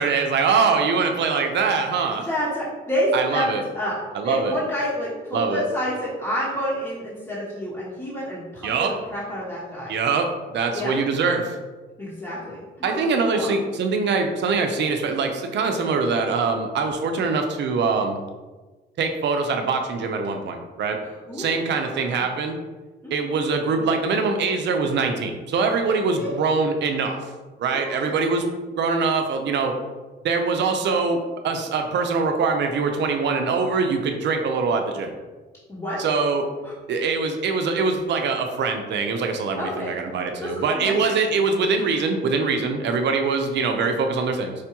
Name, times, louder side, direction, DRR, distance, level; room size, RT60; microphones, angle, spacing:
voice 1, 0.0-2.3 3.1-3.6 4.1-4.5 5.3-5.6 8.6-8.9 9.9-11.5 12.8-18.2 19.0-21.0 21.3-22.6 23.1-27.2 27.6-28.5 28.8-29.7 30.2-31.2 31.4-35.1 36.0-36.4 36.9-44.5, right 4 dB, 60° right, 5 dB, 0.6 m, -23 dB
voice 2, 2.1-3.5 3.7-4.0 4.2-9.9 10.7-10.9 12.0-13.0 13.3-13.5 21.0-22.3 23.0-23.1 26.2-26.3 27.7-28.2 35.7-36.0 36.6-36.7 39.6-39.9 40.4-41.0 41.3-41.4, equal, 15° left, -9 dB, 0.9 m, -29 dB
4.8 x 2.2 x 2.9 m, 1.3 s
cardioid pair, 90°, 20 cm